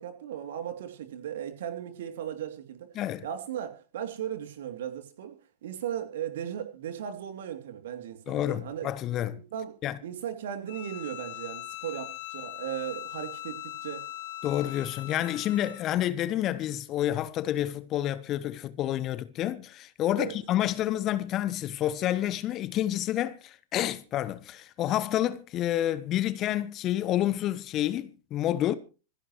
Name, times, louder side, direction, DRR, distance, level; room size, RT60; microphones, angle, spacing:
voice 1, 0.0-2.9 3.2-8.9 9.3-9.7 10.0-14.0 20.2-20.3, right 10 dB, 60° right, 2.9 m, -37 dB
voice 2, 2.9-3.3 8.3-9.4 9.8-10.0 14.4-28.8, left 12 dB, 35° left, 1.0 m, -29 dB
Bowed string instrument, 10.7-15.9, left 14 dB, 55° left, 2.2 m, -41 dB
25.5 x 11.0 x 3.1 m
figure-of-eight pair, 90°, 0 cm